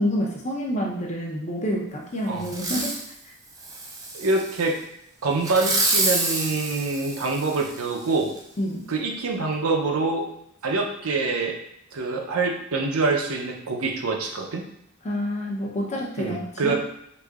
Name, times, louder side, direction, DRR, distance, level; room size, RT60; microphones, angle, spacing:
voice 1, 0.0-2.9 8.6-8.9 15.0-16.8, equal, 30° left, -2 dB, 0.6 m, -28 dB
Fireworks, 2.4-3.1 3.6-4.6 5.4-7.8 8.4-8.5, right 2 dB, 15° right, 0.3 m, -27 dB
voice 2, 4.1-4.7 5.2-8.3 8.9-10.2 10.6-11.5 11.9-14.7 16.2-16.8, right 3 dB, 85° right, 2 dB, 0.6 m, -25 dB
4.9 x 2.7 x 2.4 m, 0.76 s
head